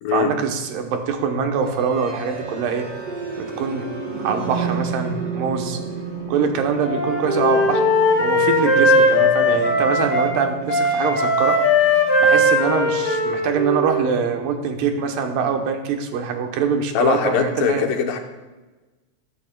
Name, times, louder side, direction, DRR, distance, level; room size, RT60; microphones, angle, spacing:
voice 1, 0.1-2.9 3.4-3.9 4.2-5.8 6.3-7.8 8.2-11.6 12.2-17.9, right 6 dB, 85° right, 4 dB, 2.6 m, -23 dB
sound 1, 1.6-13.5, right 5 dB, 50° right, 3.2 m, -33 dB
Wind instrument woodwind instrument, 6.8-10.3 10.7-14.4, left 1 dB, 55° left, 4.1 m, -19 dB
voice 2, 16.9-18.2, left 8 dB, 85° left, 5 dB, 2.6 m, -21 dB
13.5 x 12.5 x 2.2 m, 1.2 s
omnidirectional pair, 3.8 m